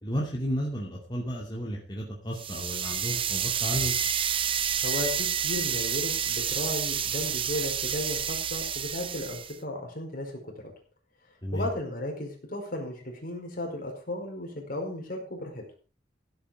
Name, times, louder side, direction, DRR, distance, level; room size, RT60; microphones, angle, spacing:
voice 1, 0.0-4.0 11.4-11.7, equal, 25° left, -2 dB, 2.7 m, -32 dB
sound 1, 2.4-9.6, right 8 dB, 30° right, 0.6 m, -29 dB
voice 2, 4.8-10.5 11.5-15.6, left 1 dB, 55° left, 2 dB, 5.0 m, -35 dB
16.0 x 8.3 x 5.1 m, 0.37 s
head